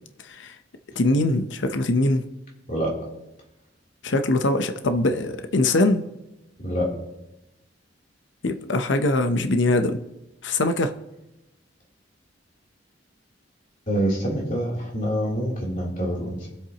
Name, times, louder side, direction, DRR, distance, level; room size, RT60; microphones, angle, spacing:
voice 1, 1.0-2.2 4.0-6.0 8.4-10.0 10.4-10.9, left 2 dB, 70° left, 8 dB, 0.8 m, -22 dB
voice 2, 2.7-3.1 6.6-6.9 13.9-16.5, equal, 45° left, -3 dB, 3.2 m, -26 dB
23.5 x 7.9 x 2.9 m, 0.94 s
head